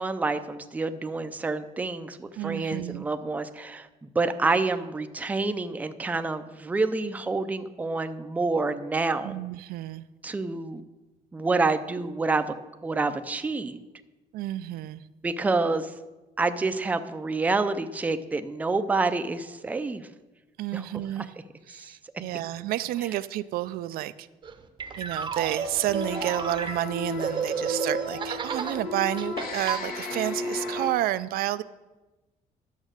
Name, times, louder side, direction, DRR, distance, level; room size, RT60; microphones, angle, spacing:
voice 1, 0.0-9.4 10.2-10.8 11.3-12.5 12.8-13.8 15.2-15.9 16.4-20.1 20.7-20.9 21.2-21.3 21.8-21.9, right 3 dB, 10° right, 9 dB, 0.4 m, -28 dB
voice 2, 2.4-3.0 9.2-10.0 14.3-15.0 20.6-21.3 21.7-24.3 25.0-31.6, right 14 dB, 90° right, 14 dB, 0.5 m, -30 dB
sound 1, 24.4-28.8 29.2-29.8, right 5 dB, 30° right, 0.7 m, -32 dB
sound 2, 25.5-30.9, left 3 dB, 80° left, 1.9 m, -35 dB
11.0 x 7.2 x 6.5 m, 1.1 s
cardioid pair, 175°, 15 cm